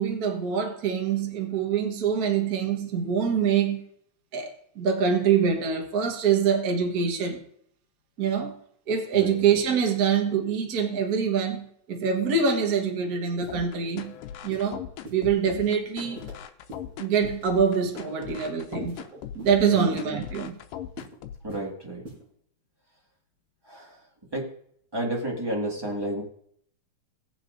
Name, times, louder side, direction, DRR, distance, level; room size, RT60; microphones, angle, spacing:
voice 1, 0.0-3.8 4.3-7.4 8.2-8.5 8.9-14.1 14.4-14.8 15.1-16.2 17.0-18.9 19.3-20.6, right 6 dB, 50° right, 1.1 m, -25 dB
sound 1, 13.4-13.6 14.0-14.1 14.5-14.7 15.1-15.2 15.6-15.8 16.2-16.3 16.7-16.9 17.2-17.4 17.8-18.5 18.9-19.0 19.4-19.6 19.9-20.1 20.4-20.6 21.0-21.2 21.5-21.7 22.1-22.2, right 1 dB, 25° right, 4.9 m, -42 dB
sound 2, 13.5-21.5, left 9 dB, 85° left, 2.3 m, -39 dB
voice 2, 21.4-22.0 23.6-24.5 24.9-26.2, right 1 dB, 10° right, 1.1 m, -31 dB
19.0 x 7.4 x 2.6 m
omnidirectional pair, 3.7 m